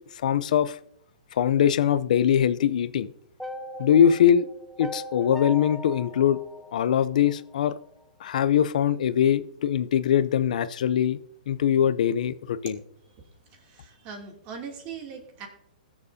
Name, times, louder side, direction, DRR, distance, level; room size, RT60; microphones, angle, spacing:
voice 1, 0.2-0.8 1.3-3.1 3.8-4.5 4.8-6.4 6.7-7.8 8.2-11.2 11.5-12.8, left 9 dB, 65° left, 0.6 m, -22 dB
sound 1, 3.4-7.6, left 1 dB, ahead, 0.6 m, -39 dB
voice 2, 13.5-15.5, right 6 dB, 35° right, 2.8 m, -40 dB
20.5 x 7.1 x 2.8 m
hypercardioid pair, 140°, 4 cm